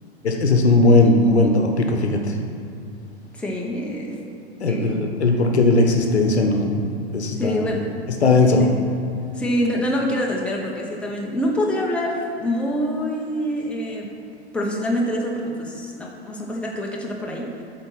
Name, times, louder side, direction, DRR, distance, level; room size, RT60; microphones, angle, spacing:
voice 1, 0.2-2.2 4.6-6.7 7.1-7.6 8.2-8.6, left 2 dB, 80° left, 4 dB, 0.9 m, -17 dB
voice 2, 3.3-4.2 4.7-5.0 7.4-7.9 8.6-8.7 9.3-14.1 14.5-17.5, equal, 5° left, -2 dB, 0.9 m, -25 dB
8.0 x 4.3 x 5.7 m, 2.6 s
figure-of-eight pair, 100°, 33 cm